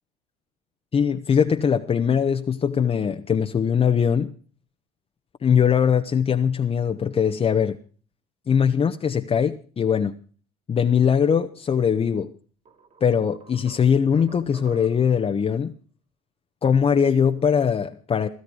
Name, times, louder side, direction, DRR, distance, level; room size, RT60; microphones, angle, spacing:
voice 1, 0.9-4.3 5.4-7.8 8.5-10.2 10.7-12.3 13.0-15.7 16.6-18.3, left 7 dB, 30° left, 1.1 m, -21 dB
sound 1, 12.1-12.2 12.7-15.2, right 5 dB, 45° right, 3.5 m, -49 dB
17.0 x 14.5 x 4.7 m
hypercardioid pair, 70°, 18 cm